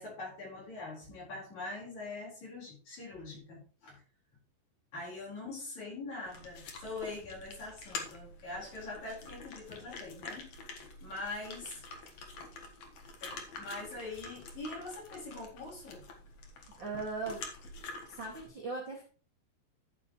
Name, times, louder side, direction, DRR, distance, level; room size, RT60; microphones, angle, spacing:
voice 1, 0.0-4.0 4.9-10.5 10.8-11.8 13.2-16.0, left 2 dB, 40° left, -3 dB, 5.6 m, -43 dB
sound 1, 6.2-18.5, left 3 dB, 55° left, 1.9 m, -47 dB
voice 2, 16.8-17.4 18.1-19.0, right 3 dB, 40° right, -2 dB, 1.8 m, -38 dB
11.5 x 8.0 x 3.1 m, 0.37 s
omnidirectional pair, 5.0 m